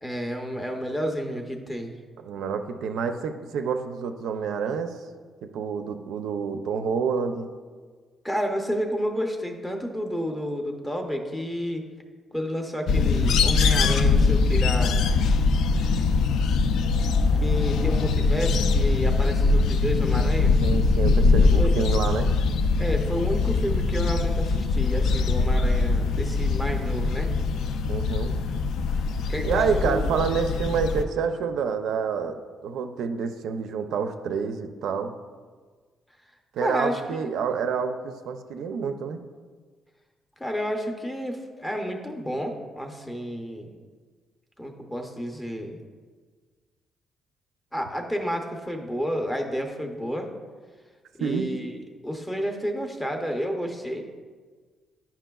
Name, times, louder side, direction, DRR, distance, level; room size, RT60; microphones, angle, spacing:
voice 1, 0.0-2.0 8.2-11.9 12.3-15.0 17.4-20.6 21.6-21.8 22.8-27.3 29.3-30.1 36.6-37.2 40.4-43.7 44.6-45.8 47.7-50.3 51.2-51.7 52.0-54.0, equal, 10° left, 3 dB, 0.6 m, -30 dB
voice 2, 2.2-4.9 5.4-7.5 20.6-22.3 27.8-28.4 29.4-35.1 36.5-39.2 51.2-51.5, right 6 dB, 75° right, 7 dB, 0.4 m, -28 dB
sound 1, 12.9-31.0, left 4 dB, 70° left, 0.3 m, -22 dB
10.0 x 5.7 x 2.3 m, 1.5 s
cardioid pair, 170°, 0 cm